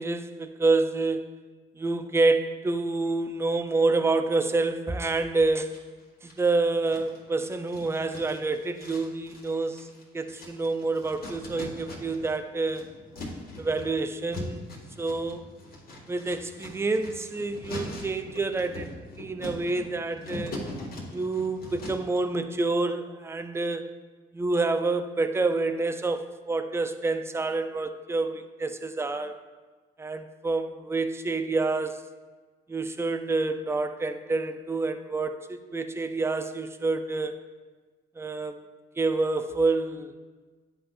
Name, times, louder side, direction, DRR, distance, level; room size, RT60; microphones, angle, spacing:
voice 1, 0.0-1.4 1.8-5.9 6.2-9.9 10.1-12.9 13.6-14.7 15.0-15.4 16.1-20.6 21.1-23.9 24.3-29.4 30.0-32.0 32.7-37.4 38.2-38.6 39.0-40.2, right 3 dB, 15° right, 9 dB, 0.4 m, -28 dB
sound 1, 5.7-6.5 6.9-12.4 12.6-22.2, left 1 dB, 50° left, 1.6 m, -41 dB
10.0 x 4.2 x 2.5 m, 1.4 s
cardioid pair, 90°, 20 cm